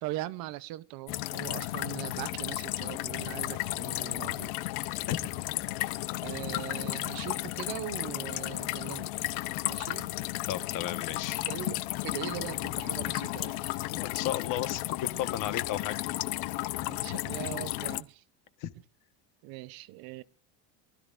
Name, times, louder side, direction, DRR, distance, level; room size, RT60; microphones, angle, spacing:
voice 1, 0.0-4.5 6.2-9.1 9.7-10.1 11.5-13.8 16.9-18.2 19.4-20.2, right 16 dB, 55° right, 0.7 m, -40 dB
sound 1, 1.1-18.0, left 18 dB, 65° left, 0.8 m, -34 dB
voice 2, 10.5-11.5 13.9-16.0 18.6-18.7, left 11 dB, 50° left, 1.3 m, -34 dB
24.0 x 13.5 x 2.5 m
cardioid pair, 165°, 42 cm